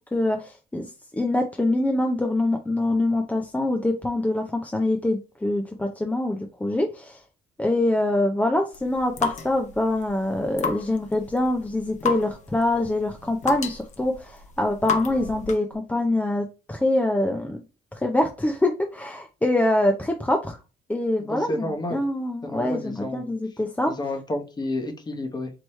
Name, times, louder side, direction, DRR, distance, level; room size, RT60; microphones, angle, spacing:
voice 1, 0.1-7.2 7.6-17.6 17.9-20.6 20.9-23.9, left 1 dB, 10° left, 3 dB, 0.5 m, -24 dB
sound 1, 8.7-15.7, left 5 dB, 45° left, 0.9 m, -33 dB
voice 2, 21.2-22.0 22.4-23.3 23.9-25.5, left 1 dB, 25° left, 4 dB, 1.1 m, -31 dB
4.7 x 2.9 x 3.1 m, 0.30 s
cardioid pair, 110°, 17 cm